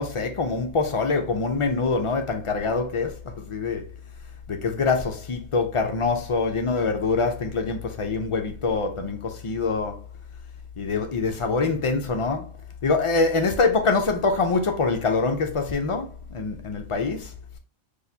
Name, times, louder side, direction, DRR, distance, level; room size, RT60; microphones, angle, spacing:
voice 1, 0.0-3.9 4.5-10.0 10.8-12.5 12.8-17.3, left 4 dB, 50° left, 0.3 m, -25 dB
4.1 x 2.7 x 2.7 m
omnidirectional pair, 1.2 m